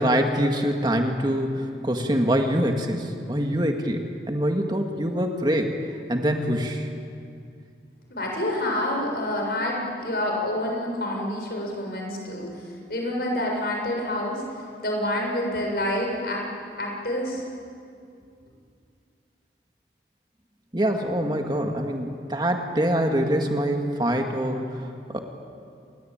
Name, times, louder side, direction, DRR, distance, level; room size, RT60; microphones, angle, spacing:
voice 1, 0.0-5.7 6.1-6.9 20.7-25.2, equal, 25° right, 3 dB, 2.0 m, -24 dB
voice 2, 8.1-16.4 16.8-17.4, left 1 dB, 60° left, 0 dB, 7.0 m, -28 dB
28.5 x 21.5 x 8.9 m, 2.4 s
head